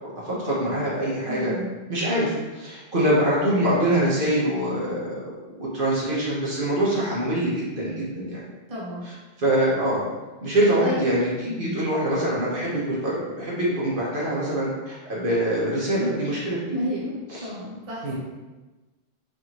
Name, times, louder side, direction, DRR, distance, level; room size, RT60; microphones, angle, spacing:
voice 1, 0.0-1.5 1.9-5.3 5.6-8.4 9.4-10.0 10.4-11.3 11.6-16.7 17.3-17.5 18.0-18.1, right 1 dB, 55° right, -6 dB, 1.2 m, -24 dB
voice 2, 1.3-1.7 8.7-9.1 10.8-11.0 11.4-11.8 16.0-16.3 16.7-18.1, left 1 dB, 35° right, -6 dB, 1.0 m, -31 dB
4.2 x 3.5 x 3.0 m, 1.2 s
omnidirectional pair, 1.1 m